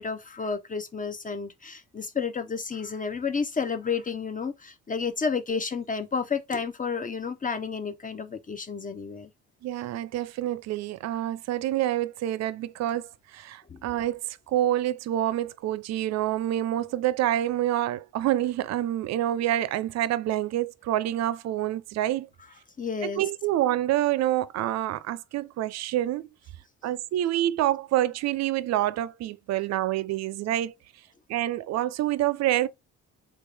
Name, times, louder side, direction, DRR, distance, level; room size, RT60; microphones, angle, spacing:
voice 1, 0.0-9.3 13.7-13.9 22.8-23.2, left 5 dB, 25° left, 0.6 m, -31 dB
voice 2, 9.6-22.3 23.0-26.3 26.8-30.7 31.3-32.7, right 13 dB, 60° right, 0.4 m, -27 dB
3.5 x 2.4 x 3.3 m
cardioid pair, 90°, 30 cm